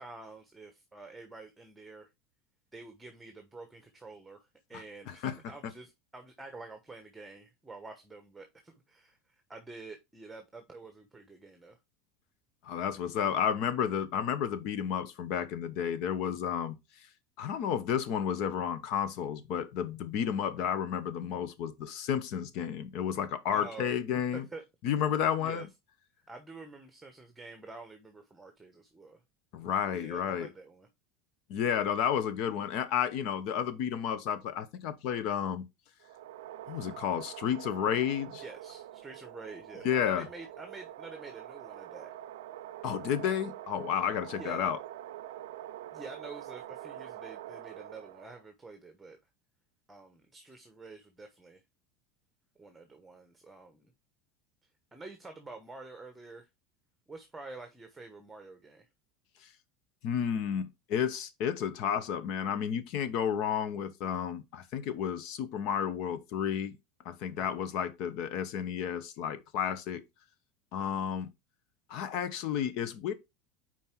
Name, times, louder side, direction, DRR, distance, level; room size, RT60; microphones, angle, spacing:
voice 1, 0.0-2.1 2.7-11.8 23.5-24.0 24.3-24.6 25.4-25.7 26.3-29.2 29.9-30.9 38.4-42.1 44.3-44.7 45.9-49.2 49.9-51.6 52.6-53.9 54.9-56.5 57.1-58.9 67.3-67.6 70.8-70.9, right 3 dB, 10° right, 1.1 m, -48 dB
voice 2, 12.6-16.7 17.4-24.5 24.8-25.7 29.5-30.5 31.5-35.6 36.7-38.4 39.8-40.3 42.8-44.8 60.0-66.8 67.0-70.0 70.7-71.3 71.9-73.1, left 8 dB, 60° left, 1.0 m, -31 dB
sound 1, 36.0-48.5, right 13 dB, 85° right, 0.5 m, -45 dB
5.4 x 4.6 x 4.5 m
supercardioid pair, 120°, 0 cm